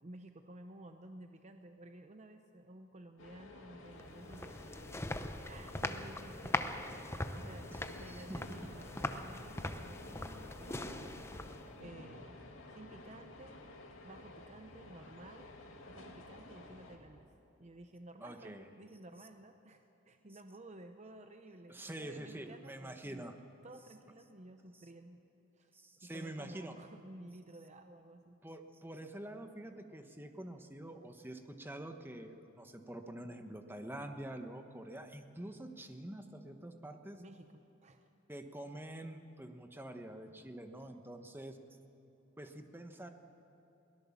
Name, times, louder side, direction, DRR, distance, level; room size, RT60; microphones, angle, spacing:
voice 1, 0.0-5.0 5.5-6.7 7.3-11.2 11.8-12.4 12.7-13.6 14.0-15.5 15.9-17.3 17.6-23.4 23.6-25.2 25.5-25.7 26.0-28.4 37.2-38.1, right 1 dB, 35° right, 6 dB, 0.7 m, -54 dB
sound 1, 3.2-17.0, left 2 dB, 90° left, 2.3 m, -52 dB
sound 2, 4.0-11.8, left 2 dB, 15° left, 0.7 m, -41 dB
voice 2, 7.7-8.4 18.2-18.7 21.7-23.3 25.7-26.8 28.4-37.2 38.3-41.6 42.4-43.1, right 1 dB, 10° right, 6 dB, 1.1 m, -46 dB
22.5 x 17.5 x 7.2 m, 2.9 s
head